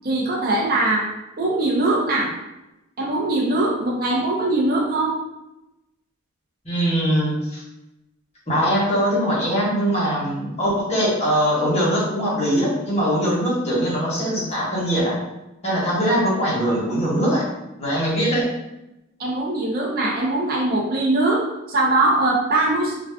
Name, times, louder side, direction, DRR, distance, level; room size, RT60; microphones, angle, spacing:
voice 1, 0.0-1.1 1.4-2.3 3.0-5.2 18.1-18.3 19.2-23.0, right 2 dB, 40° right, -4 dB, 0.5 m, -21 dB
voice 2, 6.6-7.6 8.5-15.2 15.6-17.4 17.8-18.5, equal, 30° left, -6 dB, 1.0 m, -21 dB
2.3 x 2.3 x 3.4 m, 0.95 s
head